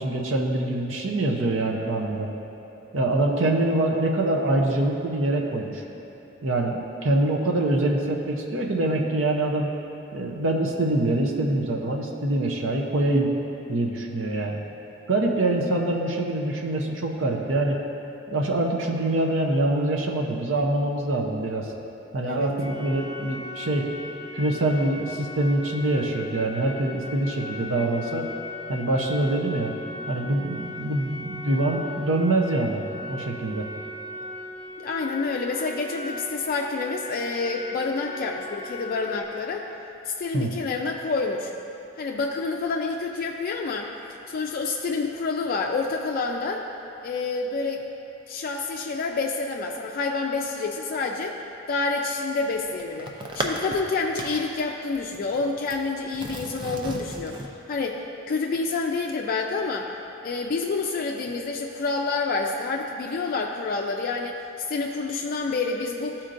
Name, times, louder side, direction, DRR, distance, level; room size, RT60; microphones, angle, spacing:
voice 1, 0.0-2.3 2.9-5.8 6.4-9.7 10.1-13.3 13.7-14.6 15.1-17.8 18.3-21.7 22.1-23.9 24.3-28.3 28.7-29.7 30.1-32.8 33.1-33.7 40.3-40.5, right 2 dB, 70° right, 1 dB, 0.7 m, -24 dB
sound 1, 22.6-39.2, left 2 dB, 50° right, 1.4 m, -38 dB
voice 2, 34.8-39.7 40.0-41.5 42.0-43.9 44.3-46.7 47.0-47.8 48.3-51.4 51.7-59.9 60.2-66.2, left 4 dB, 45° left, 1 dB, 0.3 m, -28 dB
sound 2, 52.3-53.9 54.2-54.6 55.0-55.8 56.1-57.5, right 1 dB, 25° right, 0.5 m, -34 dB
12.5 x 4.3 x 2.5 m, 2.9 s
head